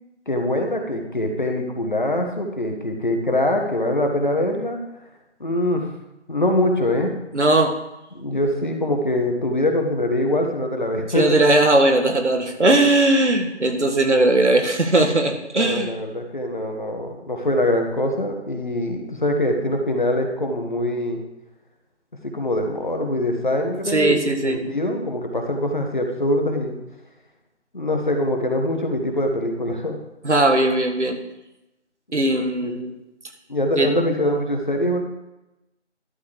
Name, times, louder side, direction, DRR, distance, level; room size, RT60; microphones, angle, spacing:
voice 1, 0.3-4.8 5.4-5.9 6.3-7.2 8.1-11.4 13.7-13.8 15.5-21.2 22.2-26.8 27.7-30.0 32.6-32.7 33.5-35.0, left 1 dB, 40° left, 3 dB, 1.5 m, -23 dB
voice 2, 7.3-7.7 11.1-15.9 23.9-24.6 30.2-31.2 32.1-32.9 33.8-33.9, right 2 dB, 75° right, 5 dB, 1.7 m, -18 dB
11.5 x 5.4 x 6.5 m, 0.95 s
figure-of-eight pair, 170°, 36 cm